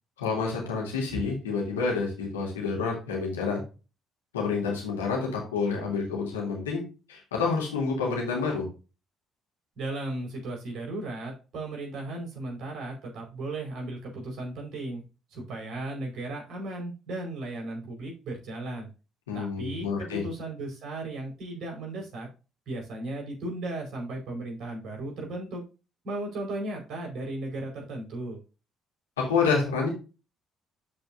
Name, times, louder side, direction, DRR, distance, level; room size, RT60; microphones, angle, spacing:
voice 1, 0.2-3.6 4.3-6.8 7.1-8.7 19.3-20.2 29.2-29.9, left 5 dB, 85° left, -1 dB, 2.7 m, -28 dB
voice 2, 9.7-15.0 15.3-18.9 19.3-22.3 22.7-25.6 26.0-28.4, right 2 dB, 55° right, 0 dB, 4.5 m, -36 dB
12.0 x 5.1 x 2.6 m, 0.31 s
figure-of-eight pair, 50°, 0 cm